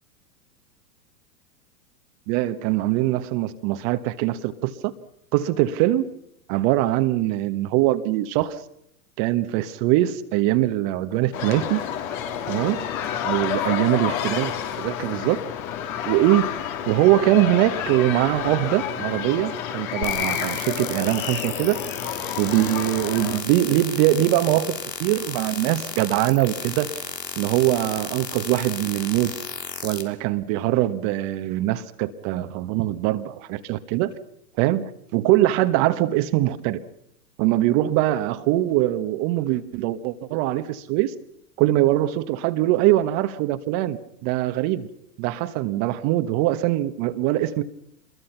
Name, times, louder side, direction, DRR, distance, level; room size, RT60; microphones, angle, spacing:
voice 1, 2.3-4.9 5.3-6.0 6.5-8.6 9.2-11.8 12.5-12.8 13.2-14.5 14.8-15.4 16.0-16.5 16.9-21.8 22.4-26.9 27.4-29.3 29.8-34.1 34.6-34.8 35.1-36.8 37.4-41.1 41.6-44.9 45.2-47.6, right 15 dB, 40° right, 10 dB, 1.4 m, -22 dB
sound 1, 11.3-23.4, left 9 dB, 55° left, 3.5 m, -29 dB
sound 2, 20.0-30.0, left 6 dB, 90° left, 3.2 m, -34 dB
26.5 x 22.0 x 5.9 m, 0.74 s
hypercardioid pair, 115°, 48 cm